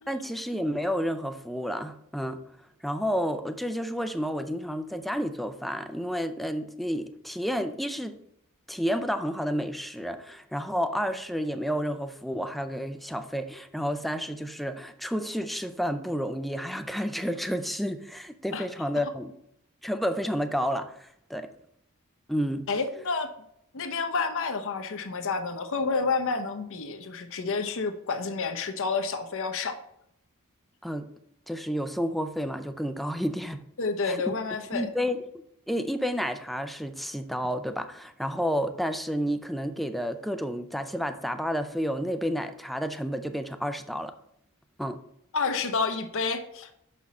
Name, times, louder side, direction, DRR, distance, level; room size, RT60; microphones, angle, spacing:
voice 1, 0.1-2.4 2.8-8.2 8.7-19.3 19.8-21.5 22.3-22.7 30.8-31.1 31.5-33.6 34.1-34.2 34.7-44.1 44.8-45.0, equal, ahead, 8 dB, 0.4 m, -30 dB
voice 2, 22.7-23.3 23.7-29.8 33.8-34.9 45.3-46.7, left 4 dB, 60° left, 7 dB, 0.8 m, -29 dB
6.1 x 5.8 x 4.2 m, 0.75 s
head